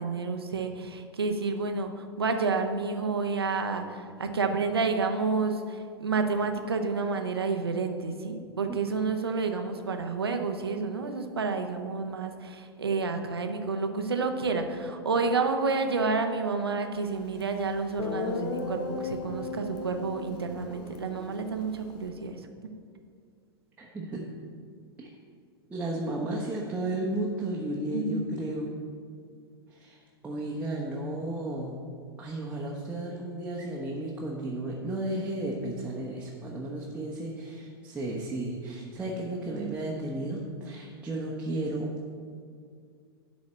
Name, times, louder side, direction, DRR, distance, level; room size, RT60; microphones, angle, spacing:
voice 1, 0.0-22.7 27.9-28.2, right 4 dB, 70° right, 5 dB, 1.0 m, -30 dB
Guitar, 17.4-17.5 18.0-22.1, left 3 dB, 35° left, 1.0 m, -36 dB
voice 2, 23.8-24.3 25.0-25.1 25.7-28.7 29.7-31.9 32.2-41.9, right 1 dB, 10° right, -4 dB, 1.2 m, -33 dB
11.5 x 4.2 x 7.6 m, 2.2 s
figure-of-eight pair, 95°, 13 cm